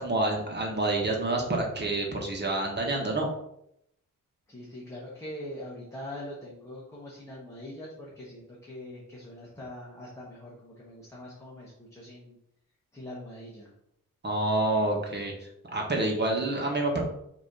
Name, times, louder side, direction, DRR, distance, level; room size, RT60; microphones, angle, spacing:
voice 1, 0.0-3.3 14.2-17.0, right 2 dB, 30° right, 0 dB, 1.4 m, -28 dB
voice 2, 4.5-12.4 12.9-13.7, left 1 dB, 10° left, -7 dB, 1.3 m, -43 dB
6.0 x 3.0 x 5.4 m, 0.76 s
wide cardioid pair, 170°, 34 cm